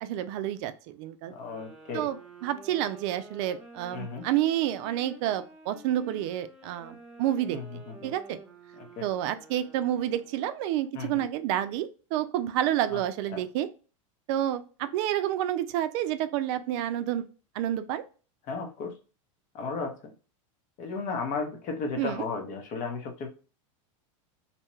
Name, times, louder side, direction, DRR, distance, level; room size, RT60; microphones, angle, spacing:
voice 1, 0.0-1.3 1.9-2.2 2.4-8.4 9.0-13.7 14.3-17.3 17.5-18.0 22.0-22.2, right 12 dB, 60° right, 11 dB, 0.4 m, -29 dB
voice 2, 1.3-2.1 3.9-4.3 7.5-8.1 8.8-9.1 10.9-11.2 12.9-13.0 13.3-13.4 18.5-19.0 19.5-20.1 20.8-23.3, left 4 dB, 50° left, 4 dB, 0.8 m, -35 dB
sound 1, 1.4-10.6, right 2 dB, 5° right, 0.8 m, -50 dB
2.8 x 2.2 x 3.0 m, 0.35 s
supercardioid pair, 115°, 17 cm